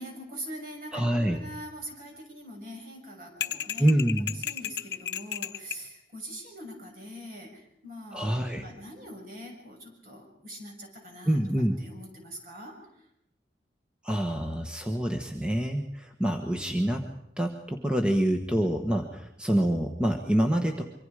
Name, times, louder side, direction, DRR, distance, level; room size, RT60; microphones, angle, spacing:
voice 1, 0.0-3.9 4.3-11.4 11.8-12.7, equal, 50° right, 1 dB, 6.4 m, -43 dB
voice 2, 0.9-1.4 3.8-4.3 8.1-8.7 11.2-11.8 14.0-17.1 17.4-20.8, right 1 dB, 5° right, 4 dB, 1.3 m, -26 dB
sound 1, 3.4-5.9, left 9 dB, 70° left, 1.0 m, -34 dB
25.5 x 24.5 x 5.0 m, 0.84 s
head